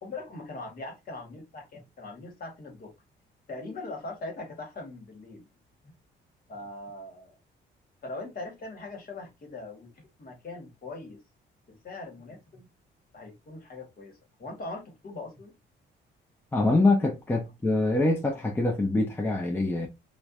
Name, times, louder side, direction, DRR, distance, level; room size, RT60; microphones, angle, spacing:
voice 1, 0.0-2.9 3.5-5.5 5.8-5.9 6.5-7.4 8.0-9.9 10.2-11.2 11.7-12.7 13.1-15.5, left 2 dB, 45° left, 1.2 m, -41 dB
voice 2, 16.5-19.9, left 2 dB, 10° left, 0.5 m, -24 dB
2.5 x 2.2 x 2.3 m
cardioid pair, 90°, 20 cm